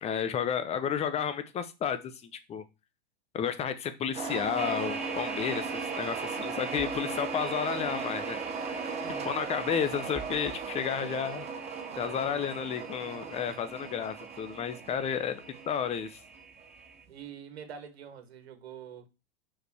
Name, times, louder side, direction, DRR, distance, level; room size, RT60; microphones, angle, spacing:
voice 1, 0.0-2.6 3.3-8.4 9.2-11.5 12.0-16.2, left 8 dB, 20° left, 0.9 m, -32 dB
sound 1, 4.1-16.9, right 5 dB, 20° right, 1.2 m, -37 dB
sound 2, 4.5-17.0, right 5 dB, 5° right, 0.3 m, -45 dB
voice 2, 11.9-12.4 17.1-19.1, right 8 dB, 80° right, 2.0 m, -45 dB
5.3 x 5.0 x 6.3 m
hypercardioid pair, 135°, 31 cm